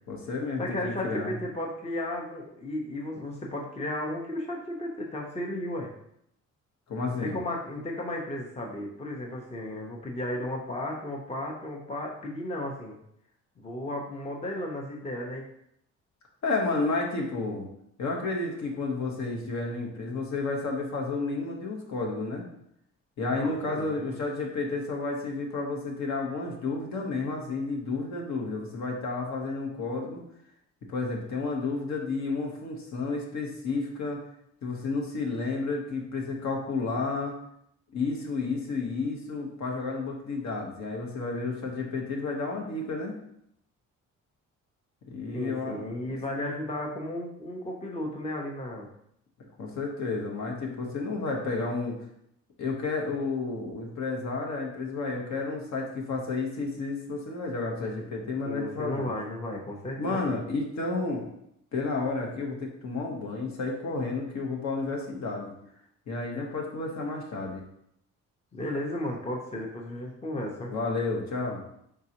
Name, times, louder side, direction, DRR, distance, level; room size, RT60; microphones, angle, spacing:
voice 1, 0.1-1.3 6.9-7.4 16.4-17.7 18.0-22.4 23.2-30.2 30.9-34.3 34.6-37.4 37.9-43.2 45.1-45.8 49.6-52.0 52.6-59.1 60.0-61.3 61.7-65.5 66.1-67.6 70.7-71.6, left 3 dB, 65° left, 0 dB, 1.0 m, -31 dB
voice 2, 0.6-5.9 7.2-13.0 13.6-15.4 23.3-24.0 45.3-48.9 58.4-60.4 68.5-70.7, left 1 dB, 20° left, 0 dB, 0.8 m, -34 dB
3.9 x 3.7 x 2.8 m, 0.73 s
cardioid pair, 90°, 30 cm